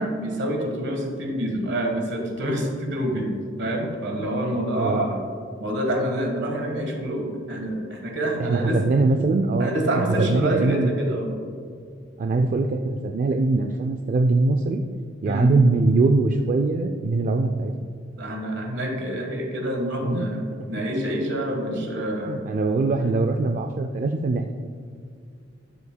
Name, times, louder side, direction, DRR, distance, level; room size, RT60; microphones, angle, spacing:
voice 1, 0.0-3.3 3.6-5.2 5.6-8.8 9.6-11.3 15.2-15.5 18.2-22.4, right 1 dB, 65° right, 2 dB, 1.4 m, -27 dB
voice 2, 8.4-9.7 10.2-10.9 12.2-14.8 15.2-17.7 20.0-20.4 21.7-21.9 22.3-24.5, right 3 dB, 45° right, 5 dB, 0.3 m, -22 dB
12.0 x 7.0 x 2.2 m, 2.2 s
head